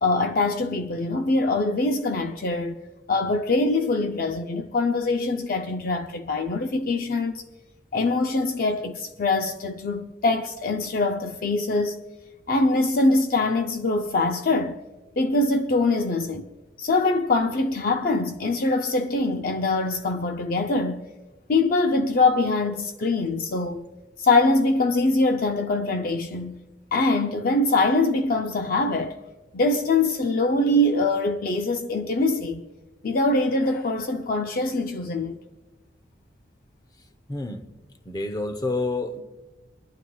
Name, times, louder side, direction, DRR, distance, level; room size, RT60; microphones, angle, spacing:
voice 1, 0.0-2.8 3.1-7.4 7.9-12.0 12.5-14.8 15.2-16.4 16.8-21.0 21.5-23.9 24.2-26.6 26.9-29.2 29.5-32.6 33.0-35.4, left 2 dB, 50° left, 0.5 m, -23 dB
voice 2, 37.3-37.6 38.0-39.2, left 2 dB, 20° left, 0.8 m, -28 dB
27.5 x 11.5 x 2.3 m
head